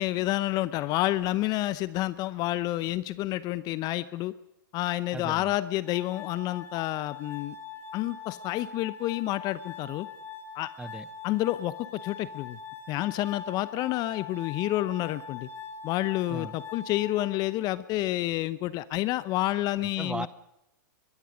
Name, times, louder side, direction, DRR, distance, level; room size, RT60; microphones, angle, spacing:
voice 1, 0.0-4.3 4.7-7.6 7.9-10.1 10.5-10.7 11.2-12.6 12.9-15.5 15.8-20.3, left 16 dB, 35° left, 16 dB, 0.8 m, -29 dB
voice 2, 5.1-5.5 10.8-11.1 16.3-16.6 19.8-20.3, right 3 dB, 10° right, 16 dB, 0.8 m, -37 dB
Glass, 5.9-17.9, left 6 dB, 20° left, 3.1 m, -42 dB
22.5 x 22.0 x 5.2 m, 0.86 s
hypercardioid pair, 110°, 11 cm